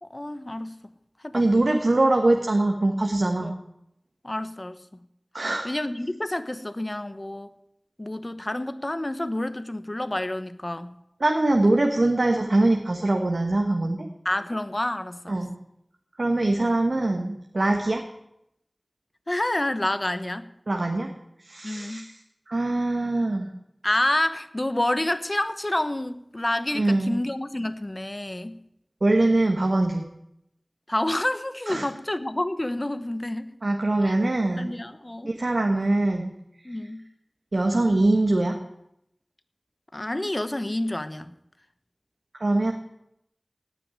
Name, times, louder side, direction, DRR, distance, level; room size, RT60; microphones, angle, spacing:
voice 1, 0.0-0.7 1.2-1.4 3.4-3.5 4.2-4.8 5.6-7.5 8.0-11.0 14.2-15.4 16.6-16.8 19.3-20.5 21.6-22.0 23.8-28.6 30.9-33.5 34.0-34.1 34.6-35.3 36.6-37.0 39.9-41.3, left 1 dB, 40° left, 11 dB, 1.0 m, -28 dB
voice 2, 1.3-3.6 5.3-5.7 11.2-14.1 15.3-15.5 16.2-18.0 20.7-21.1 21.4-22.1 22.5-23.5 26.7-27.1 29.0-30.0 31.7-31.9 33.6-34.7 35.2-36.3 36.6-36.7 37.5-38.6 42.3-42.7, right 2 dB, 85° right, 3 dB, 1.3 m, -23 dB
17.5 x 6.1 x 9.7 m, 0.80 s
wide cardioid pair, 45°, 0 cm